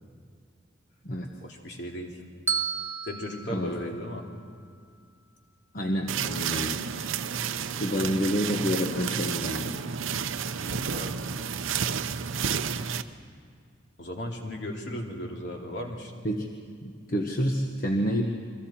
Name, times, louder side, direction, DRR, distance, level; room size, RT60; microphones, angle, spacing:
voice 1, 1.4-2.2 3.0-4.3 10.7-11.2 14.0-16.1, equal, 60° left, 0 dB, 2.8 m, -36 dB
Bell, 2.5-4.7, right 5 dB, 10° right, 0.7 m, -33 dB
voice 2, 5.7-6.8 7.8-9.8 16.2-18.3, equal, 45° left, 1 dB, 1.2 m, -28 dB
sound 1, 6.1-13.0, right 7 dB, 85° right, 0.7 m, -31 dB
29.5 x 23.5 x 4.4 m, 2.1 s
head